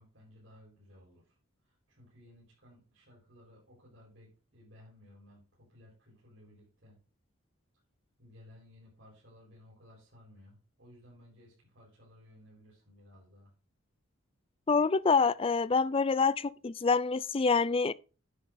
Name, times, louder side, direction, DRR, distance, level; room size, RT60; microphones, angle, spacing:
voice 1, 0.0-1.4 1.6-7.0 8.2-13.5, left 1 dB, 60° right, 4.8 m, -58 dB
voice 2, 14.7-17.9, left 4 dB, 25° left, 0.4 m, -26 dB
10.0 x 6.7 x 3.9 m
head